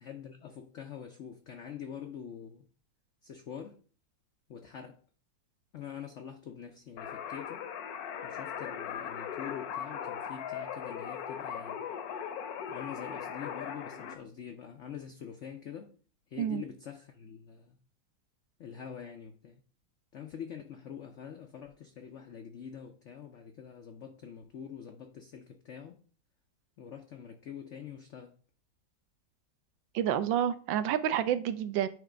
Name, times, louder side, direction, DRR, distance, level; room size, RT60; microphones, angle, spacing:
voice 1, 0.0-2.6 3.2-3.8 4.5-5.0 5.7-7.7 8.2-11.8 12.7-15.9 16.3-17.8 18.6-19.6 20.1-26.0 26.8-28.3, left 8 dB, 85° left, 0.6 m, -45 dB
sound 1, 7.0-14.2, left 8 dB, 65° left, 1.0 m, -39 dB
voice 2, 29.9-31.9, right 10 dB, 80° right, 1.3 m, -29 dB
9.3 x 3.2 x 5.0 m
omnidirectional pair, 2.1 m